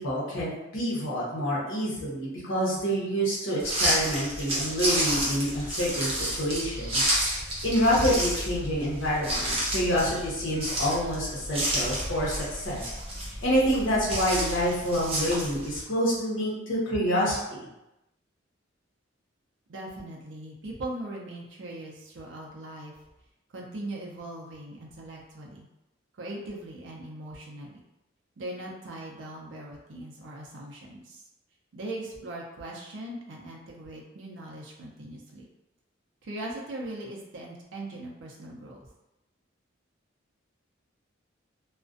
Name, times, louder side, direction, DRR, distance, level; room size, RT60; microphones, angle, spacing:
voice 1, 0.0-7.1 7.6-12.8 13.4-17.7, equal, 80° left, -6 dB, 0.9 m, -27 dB
sound 1, 3.6-15.8, right 1 dB, 30° right, 0.7 m, -30 dB
voice 2, 19.7-23.0 23.5-25.7 26.2-27.8 28.4-31.2 31.7-35.5 36.2-38.9, right 1 dB, 65° right, -2 dB, 0.5 m, -40 dB
2.4 x 2.1 x 2.5 m, 0.93 s
head